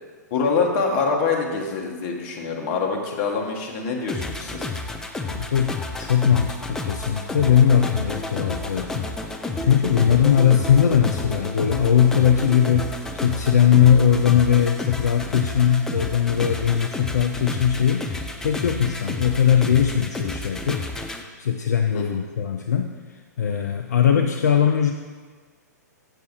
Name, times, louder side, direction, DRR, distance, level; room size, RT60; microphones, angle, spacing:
voice 1, 0.3-4.7 10.0-10.2 21.9-22.0, left 4 dB, 40° left, 1 dB, 1.5 m, -25 dB
sound 1, 4.1-21.2, left 2 dB, 5° left, 0.5 m, -31 dB
voice 2, 5.3-9.1 9.4-20.9 21.4-22.9 23.4-24.9, left 8 dB, 65° left, 4 dB, 0.5 m, -20 dB
7.9 x 6.8 x 4.7 m, 1.5 s
figure-of-eight pair, 115°, 10 cm